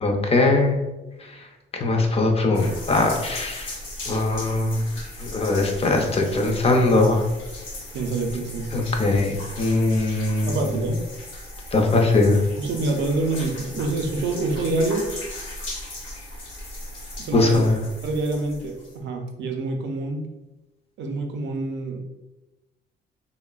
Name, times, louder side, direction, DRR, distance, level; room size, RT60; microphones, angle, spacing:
voice 1, 0.0-0.8 1.7-3.7 4.1-4.9 5.2-7.2 8.7-10.6 11.7-12.4 17.3-17.8, left 2 dB, 30° left, 2 dB, 0.5 m, -21 dB
sound 1, 2.5-19.0, left 1 dB, 75° left, 0.9 m, -37 dB
voice 2, 7.9-8.7 10.5-11.0 12.6-15.1 17.2-17.7 18.0-20.3 21.0-22.0, right 2 dB, 65° right, 4 dB, 0.5 m, -26 dB
2.9 x 2.0 x 2.3 m, 1.1 s
cardioid pair, 90°, 20 cm